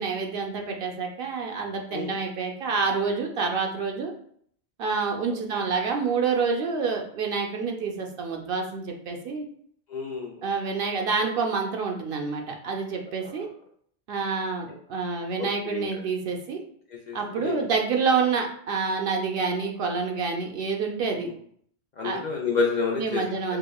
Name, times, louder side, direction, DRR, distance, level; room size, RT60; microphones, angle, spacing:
voice 1, 0.0-4.1 4.8-9.5 10.4-13.5 14.1-16.6 17.1-21.3 22.0-22.2 23.0-23.6, right 5 dB, 65° right, 2 dB, 0.7 m, -28 dB
voice 2, 9.9-10.4 13.1-13.5 14.7-14.8 15.4-16.0 16.9-17.7 21.1-21.3 22.0-23.2 23.5-23.6, left 4 dB, 55° left, -1 dB, 0.5 m, -30 dB
4.8 x 2.1 x 2.2 m, 0.62 s
omnidirectional pair, 1.1 m